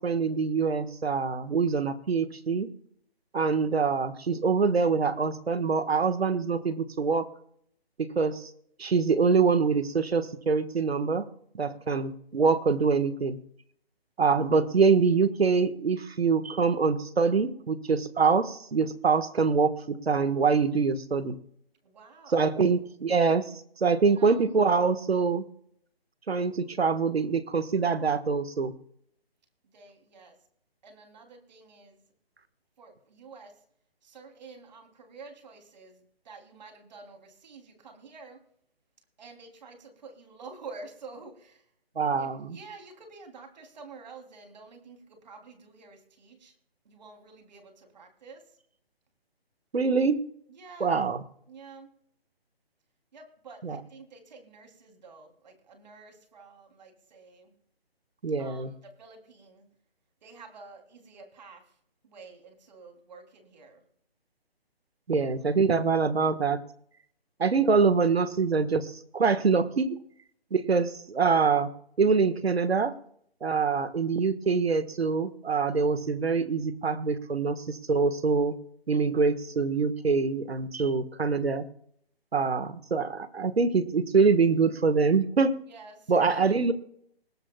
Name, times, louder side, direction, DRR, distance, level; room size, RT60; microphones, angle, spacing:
voice 1, 0.0-2.7 3.3-7.3 8.0-8.5 8.8-11.2 11.5-13.4 14.2-21.4 22.3-23.4 23.8-25.4 26.3-28.7 42.0-42.6 49.7-50.2 50.8-51.2 53.6-53.8 58.2-58.7 65.1-66.6 67.4-70.0 70.5-71.7 72.0-72.9 73.4-78.6 78.9-81.6 82.3-85.5 86.1-86.7, right 5 dB, 80° right, 12 dB, 1.5 m, -25 dB
voice 2, 11.7-12.0 21.8-22.5 24.1-24.5 29.7-30.4 30.8-32.0 32.8-33.5 34.0-38.4 39.2-41.6 42.2-46.5 46.8-48.4 50.5-50.9 51.5-51.9 53.1-57.5 58.4-59.6 60.2-61.6 62.0-63.8 65.2-65.6 85.7-86.6, right 4 dB, 45° right, 4 dB, 3.2 m, -49 dB
20.5 x 17.5 x 2.3 m, 0.68 s
hypercardioid pair, 160°, 31 cm